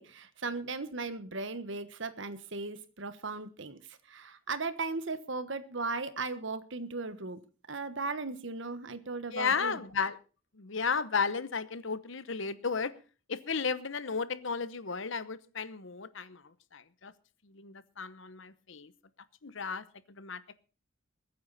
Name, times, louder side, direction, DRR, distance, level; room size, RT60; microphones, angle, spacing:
voice 1, 0.0-7.4 7.7-9.8, right 3 dB, 60° right, 1.3 m, -37 dB
voice 2, 9.3-10.2 10.6-12.9 13.3-16.4 16.7-17.1 17.5-18.9 19.4-20.4, left 5 dB, 60° left, 0.9 m, -34 dB
21.5 x 9.5 x 4.1 m
head